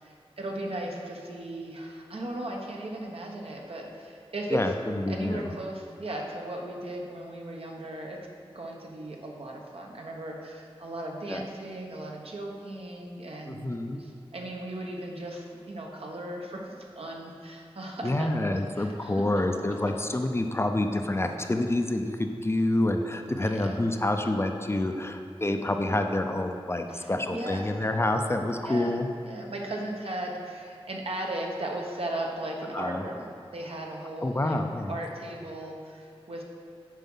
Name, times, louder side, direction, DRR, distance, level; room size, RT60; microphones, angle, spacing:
voice 1, 0.0-4.6 5.1-8.2 8.5-13.7 14.0-19.2 23.4-23.8 26.9-27.6 28.6-29.0 29.2-34.6 34.9-36.4, right 1 dB, 70° right, -1 dB, 1.1 m, -37 dB
voice 2, 4.5-5.5 11.3-11.4 13.4-14.0 18.0-29.1 32.7-33.0 34.2-34.9, left 1 dB, 25° left, 5 dB, 0.5 m, -28 dB
9.1 x 4.7 x 5.5 m, 2.3 s
wide cardioid pair, 85°, 10 cm